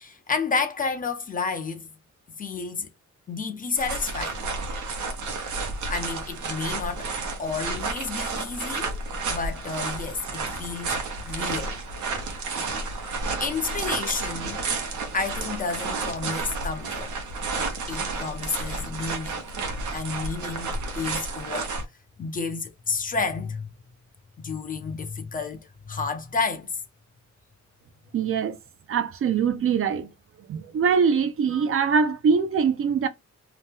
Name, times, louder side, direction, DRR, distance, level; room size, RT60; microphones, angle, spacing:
voice 1, 0.0-1.9 2.4-2.9 3.3-4.4 5.9-7.1 7.4-9.0 9.3-11.0 11.2-11.8 12.5-12.8 13.4-14.7 15.1-17.1 17.9-19.4 19.9-20.7 21.0-21.8 22.2-23.7 24.4-26.8, left 4 dB, 30° left, 0.4 m, -31 dB
sound 1, 3.8-21.8, right 3 dB, 80° right, 0.8 m, -31 dB
voice 2, 28.1-28.6 28.9-30.1 30.5-33.1, right 6 dB, 50° right, 0.4 m, -23 dB
2.9 x 2.1 x 3.3 m
wide cardioid pair, 170°, 29 cm